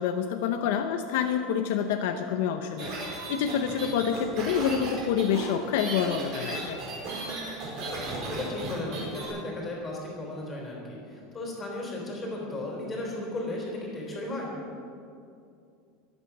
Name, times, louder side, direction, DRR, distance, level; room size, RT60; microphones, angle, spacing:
voice 1, 0.0-6.8, left 8 dB, 60° left, 6 dB, 0.8 m, -27 dB
sound 1, 2.8-9.3, right 2 dB, 40° right, 4.9 m, -35 dB
voice 2, 8.2-14.5, left 2 dB, 15° left, -2 dB, 3.7 m, -35 dB
23.0 x 8.9 x 6.1 m, 2.5 s
supercardioid pair, 180°, 0 cm